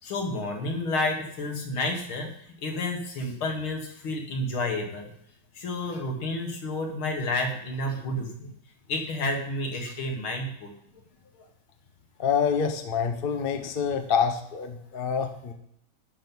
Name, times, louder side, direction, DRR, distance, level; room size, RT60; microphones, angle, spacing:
voice 1, 0.0-5.1 5.5-8.5 8.9-10.7 11.3-11.4, left 2 dB, 80° left, 2 dB, 2.6 m, -30 dB
voice 2, 12.2-15.5, left 6 dB, 35° left, 5 dB, 0.9 m, -26 dB
12.0 x 5.3 x 6.2 m, 0.73 s
omnidirectional pair, 2.3 m